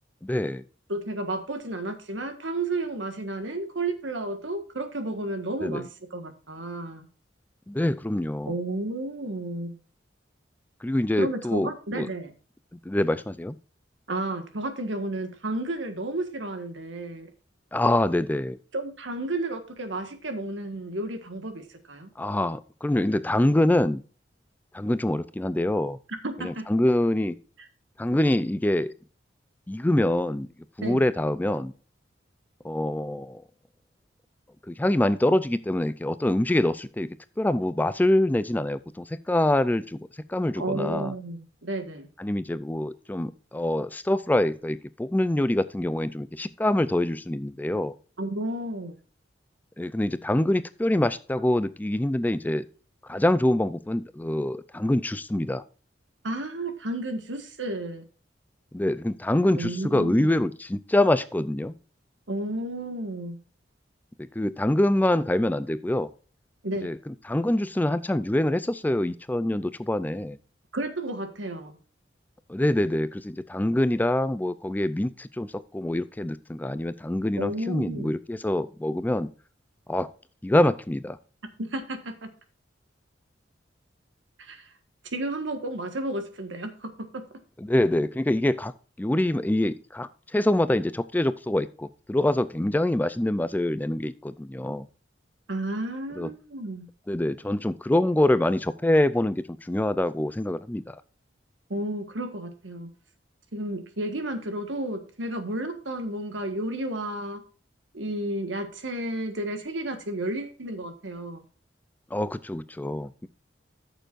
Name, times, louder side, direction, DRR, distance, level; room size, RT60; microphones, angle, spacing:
voice 1, 0.2-0.6 5.6-5.8 7.7-8.5 10.8-12.1 12.9-13.6 17.7-18.6 22.2-24.0 24.7-26.0 26.4-27.4 28.0-28.9 29.7-30.5 30.8-31.7 32.6-33.4 34.7-37.1 37.4-40.0 40.3-41.1 42.2-47.9 49.8-52.7 53.1-55.6 58.7-61.7 64.2-66.1 66.8-67.0 67.3-70.4 72.5-79.3 79.9-80.1 80.4-81.2 87.6-88.7 89.0-94.9 96.2-96.3 97.1-101.0 112.1-113.3, left 1 dB, 10° left, 14 dB, 0.4 m, -25 dB
voice 2, 0.9-7.0 8.5-9.8 11.2-12.3 14.1-17.3 18.7-22.1 26.2-26.7 30.8-31.0 40.5-42.1 48.2-49.0 56.2-58.0 59.6-60.3 62.3-63.4 66.6-66.9 70.7-71.8 77.4-78.1 81.6-82.3 84.4-84.7 85.0-87.4 95.5-96.9 101.7-102.9 103.5-107.4 107.9-111.4, right 1 dB, 90° right, 7 dB, 1.6 m, -32 dB
13.5 x 6.9 x 2.5 m, 0.38 s
head